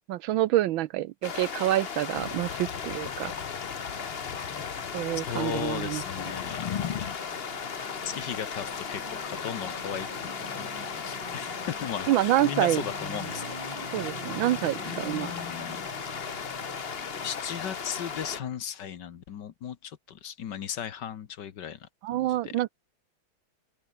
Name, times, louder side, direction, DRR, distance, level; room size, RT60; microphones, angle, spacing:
voice 1, 0.1-3.3 4.9-6.0 12.1-12.8 13.9-15.3 22.0-22.7, right 14 dB, 75° right, 1.3 m, -27 dB
sound 1, 1.2-18.4, left 6 dB, 35° left, 1.0 m, -36 dB
sound 2, 2.1-7.2, left 9 dB, 85° left, 2.4 m, -39 dB
voice 2, 5.3-6.6 7.0-7.1 8.0-13.5 14.0-14.1 14.8-15.9 17.2-22.6, left 9 dB, 60° left, 1.7 m, -37 dB
sound 3, 7.2-18.5, right 3 dB, 60° right, 6.5 m, -45 dB
open air
omnidirectional pair, 2.3 m